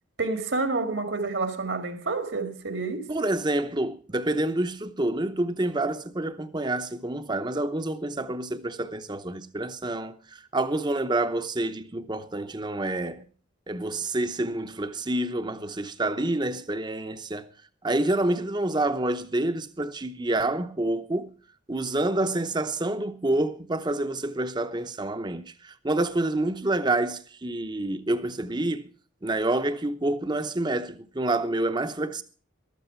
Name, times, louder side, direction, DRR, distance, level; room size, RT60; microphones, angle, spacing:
voice 1, 0.2-3.1, right 3 dB, 70° right, 2.0 m, -29 dB
voice 2, 3.1-13.2 13.7-17.5 17.8-21.3 21.7-28.8 29.2-32.2, right 2 dB, 20° right, 0.8 m, -28 dB
14.0 x 13.0 x 4.5 m
head